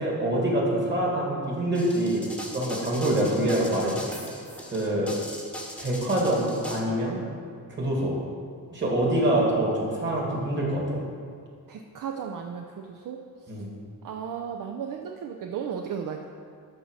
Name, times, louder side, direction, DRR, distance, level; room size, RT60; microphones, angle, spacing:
voice 1, 0.0-2.2 2.5-4.2 4.7-5.1 5.8-7.2 7.7-8.1 8.7-11.0 13.5-13.7, right 1 dB, 30° right, -3 dB, 2.1 m, -25 dB
sound 1, 1.7-6.8, left 1 dB, 5° left, 1.0 m, -39 dB
voice 2, 11.7-13.2 14.0-16.3, right 7 dB, 60° right, 3 dB, 0.6 m, -35 dB
12.0 x 4.1 x 6.4 m, 2.3 s
wide cardioid pair, 175°, 37 cm